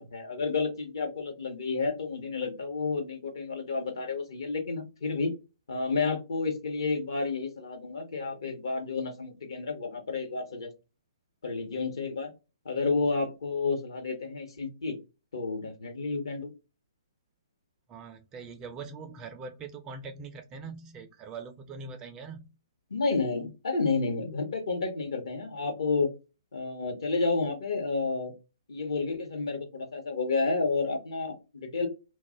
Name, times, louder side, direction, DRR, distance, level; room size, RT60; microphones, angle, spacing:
voice 1, 0.0-5.3 5.7-10.7 11.4-12.3 12.6-15.0 15.3-16.5 22.9-26.1 26.5-28.3 28.7-31.9, left 4 dB, 65° left, 0.9 m, -30 dB
voice 2, 17.9-22.5, right 4 dB, 20° right, 0.3 m, -42 dB
2.3 x 2.0 x 3.6 m
hypercardioid pair, 135°, 3 cm